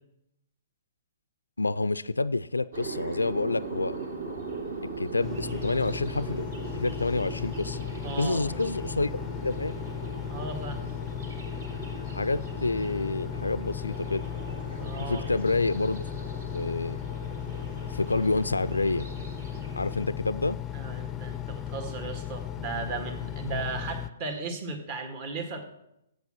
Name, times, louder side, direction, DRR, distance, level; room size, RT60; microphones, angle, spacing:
voice 1, 1.6-4.0 5.0-7.9 8.2-9.1 9.4-9.8 12.1-14.3 15.0-16.0 16.5-17.0 17.9-19.1 19.8-20.6, left 3 dB, 85° left, 15 dB, 0.3 m, -28 dB
sound 1, 2.7-20.0, right 4 dB, 65° right, 2.9 m, -40 dB
Engine, 5.2-24.1, left 10 dB, 20° left, 0.5 m, -36 dB
voice 2, 8.0-8.7 10.3-10.9 14.8-15.3 20.7-25.7, right 3 dB, 40° right, 5 dB, 1.7 m, -36 dB
8.1 x 7.9 x 8.7 m, 0.84 s
figure-of-eight pair, 120°, 0 cm